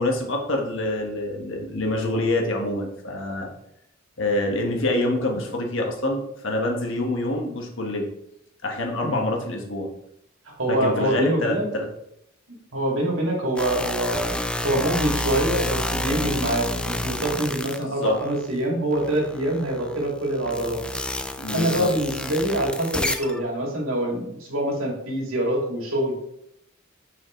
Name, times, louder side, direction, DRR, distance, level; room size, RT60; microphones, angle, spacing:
voice 1, 0.0-3.5 4.2-8.1 8.6-9.9 10.7-11.9 18.0-18.2 21.4-21.9, left 1 dB, 65° left, 1 dB, 1.5 m, -26 dB
voice 2, 10.6-11.6 12.7-14.3 14.6-20.8 21.5-26.1, right 1 dB, 80° right, -1 dB, 2.4 m, -25 dB
sound 1, 13.6-18.5 18.9-23.4, left 1 dB, 5° left, 0.4 m, -29 dB
7.3 x 5.7 x 3.2 m, 0.78 s
head